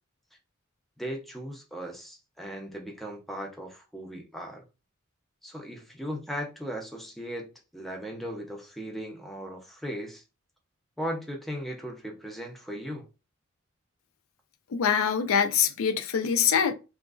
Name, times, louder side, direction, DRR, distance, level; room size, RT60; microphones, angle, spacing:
voice 1, 1.0-4.6 5.4-10.2 11.0-13.1, equal, ahead, 0.5 m, -37 dB
voice 2, 14.7-16.7, left 7 dB, 80° left, 0.4 m, -24 dB
2.8 x 2.5 x 2.3 m
head